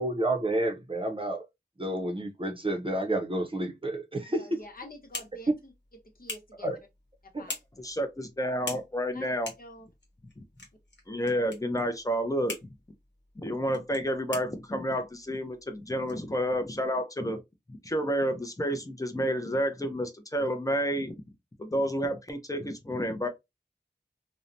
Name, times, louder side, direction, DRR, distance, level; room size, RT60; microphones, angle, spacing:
voice 1, 0.0-1.4 1.8-4.6 6.6-6.8 7.3-7.5, right 1 dB, 30° right, 0.6 m, -30 dB
voice 2, 4.3-5.7 6.1-6.8 7.2-7.5 9.1-9.3 9.6-9.9, left 1 dB, 55° left, 0.7 m, -47 dB
sound 1, 4.6-17.0, left 2 dB, 85° left, 0.9 m, -46 dB
voice 3, 7.8-9.5 10.4-10.5 11.1-12.6 13.4-17.4 17.7-21.2 21.6-23.3, equal, 20° left, 0.6 m, -30 dB
2.7 x 2.1 x 2.5 m
wide cardioid pair, 50°, 18 cm